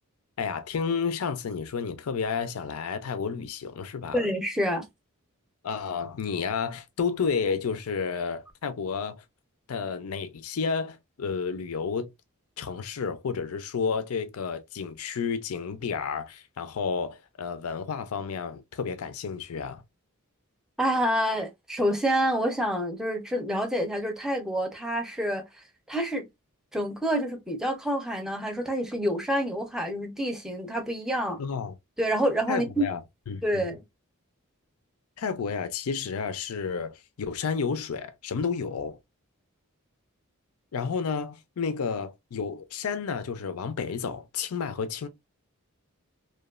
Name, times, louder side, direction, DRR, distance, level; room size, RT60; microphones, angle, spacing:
voice 1, 0.4-4.2 5.6-9.2 9.7-12.1 12.6-19.8 31.4-31.7 32.5-33.0 33.3-33.7 35.2-39.0 40.7-45.1, left 5 dB, 80° left, 0.5 m, -31 dB
voice 2, 4.1-4.9 20.8-25.5 25.9-26.2 26.7-31.4 32.0-32.9 33.4-33.8, equal, 5° right, 0.6 m, -27 dB
3.0 x 2.3 x 2.3 m
head